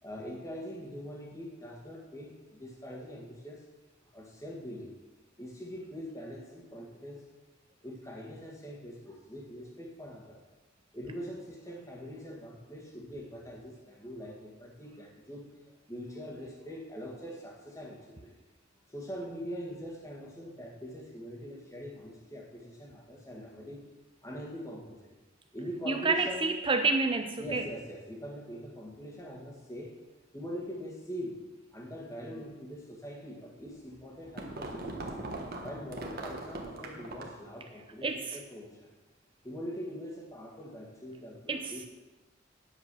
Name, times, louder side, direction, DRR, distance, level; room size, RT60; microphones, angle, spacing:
voice 1, 0.0-3.7 4.1-5.0 5.4-7.2 7.8-10.4 10.9-18.3 18.9-23.8 24.2-25.2 25.5-26.5 27.4-30.0 30.3-31.4 31.7-35.1 35.6-38.9 39.4-41.9, equal, 15° left, 0 dB, 1.8 m, -43 dB
voice 2, 25.9-27.7 38.0-38.4 41.5-41.9, right 3 dB, 25° right, 6 dB, 0.5 m, -29 dB
sound 1, 33.7-37.5, right 2 dB, 55° right, 1.4 m, -40 dB
9.4 x 8.0 x 6.2 m, 1.2 s
head